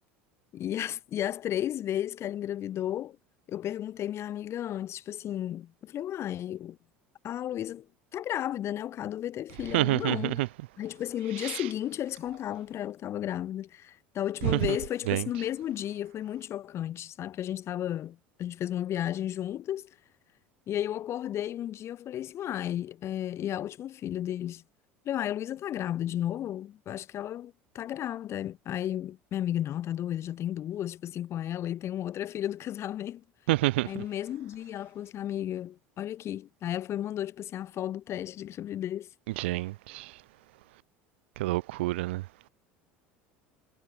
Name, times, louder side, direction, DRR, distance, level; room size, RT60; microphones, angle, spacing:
voice 1, 0.5-3.2 3.5-6.8 7.2-7.9 8.1-10.5 10.8-19.9 20.7-24.6 25.0-33.2 33.8-39.1 39.4-39.6, left 11 dB, 45° left, 2.3 m, -33 dB
voice 2, 9.7-10.5 11.4-11.6 14.4-14.6 15.1-15.2 33.5-33.9 39.4-40.1 41.4-42.2, right 19 dB, 75° right, 0.4 m, -27 dB
hypercardioid pair, 80°, 6 cm